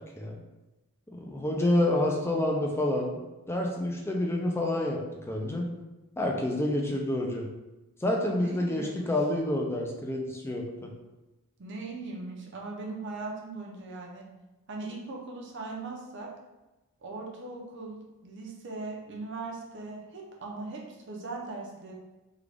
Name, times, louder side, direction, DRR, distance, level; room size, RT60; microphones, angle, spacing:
voice 1, 1.1-3.2 3.5-5.0 5.3-5.7 6.2-7.5 8.0-10.9, left 1 dB, 10° left, 0 dB, 0.4 m, -28 dB
voice 2, 8.3-9.1 11.6-14.3 14.7-16.3 17.0-21.9, right 3 dB, 55° right, -1 dB, 0.6 m, -39 dB
3.7 x 2.3 x 3.3 m, 1.0 s
head